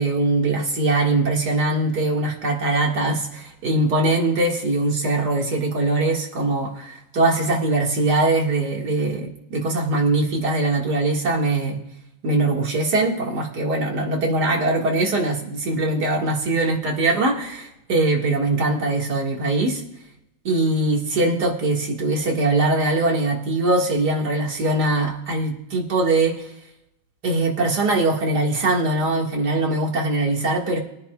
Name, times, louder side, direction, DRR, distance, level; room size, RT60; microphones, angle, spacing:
voice 1, 0.0-11.8 12.2-19.8 20.4-26.5 27.2-30.8, right 2 dB, 55° right, -1 dB, 2.5 m, -22 dB
22.5 x 9.9 x 2.4 m, 0.84 s
omnidirectional pair, 2.2 m